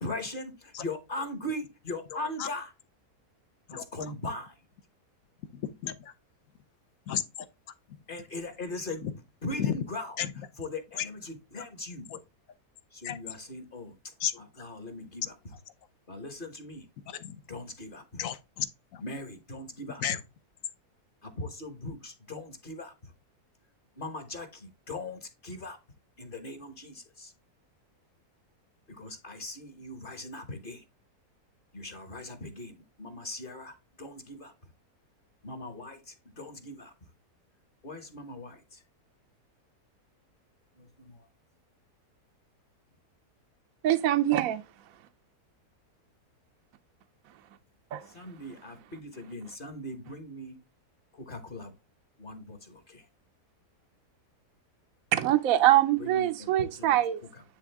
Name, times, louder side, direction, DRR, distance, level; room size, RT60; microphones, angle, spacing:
voice 1, 0.0-2.7 3.7-4.6 8.1-9.1 9.4-12.1 12.9-15.6 16.1-16.8 17.5-18.2 19.0-20.2 21.2-23.1 24.0-25.8 26.2-27.3 28.9-30.8 31.7-34.5 35.4-36.9 37.8-38.8 40.8-41.3 48.0-50.6 51.1-51.7 52.2-53.1 56.0-57.4, left 2 dB, 35° left, 1.2 m, -40 dB
voice 2, 2.1-2.5 3.7-3.9 5.4-6.1 7.1-7.5 7.9-8.0 9.0-9.1 9.6-9.8 10.2-10.3 11.0-11.1 12.1-12.2 13.0-13.2 14.2-14.4 17.1-17.4 18.2-19.0 20.0-20.2, left 9 dB, 65° left, 1.0 m, -33 dB
voice 3, 43.8-44.6 47.9-48.1 55.1-57.2, right 13 dB, 70° right, 0.9 m, -24 dB
9.8 x 3.6 x 3.4 m
omnidirectional pair, 1.7 m